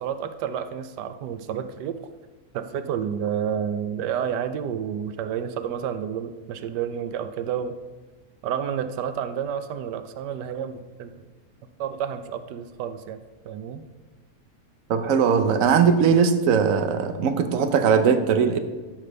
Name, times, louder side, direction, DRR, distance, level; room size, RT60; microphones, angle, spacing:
voice 1, 0.0-1.9 2.5-7.8 8.4-11.1 11.8-13.2 13.4-13.8, right 8 dB, 90° right, 10 dB, 1.3 m, -30 dB
voice 2, 14.9-18.6, right 6 dB, 60° right, 8 dB, 1.2 m, -20 dB
13.0 x 5.1 x 6.7 m, 1.3 s
omnidirectional pair, 1.8 m